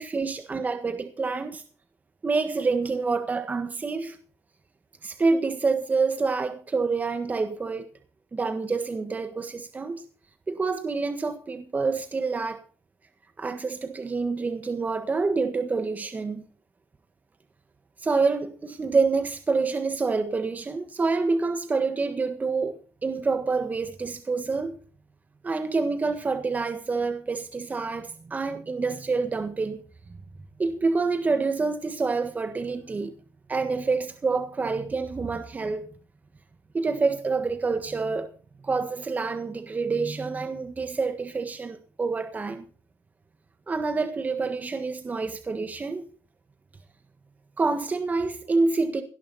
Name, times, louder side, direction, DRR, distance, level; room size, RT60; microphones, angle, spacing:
voice 1, 0.0-1.6 2.2-4.2 5.0-7.9 8.3-10.0 10.5-12.6 13.4-16.4 18.0-24.8 25.4-29.8 30.6-33.1 33.5-35.9 36.7-38.3 38.6-42.6 43.7-46.0 47.6-49.0, right 4 dB, 30° right, 1.5 m, -27 dB
18.0 x 11.0 x 4.2 m
cardioid pair, 90°, 5 cm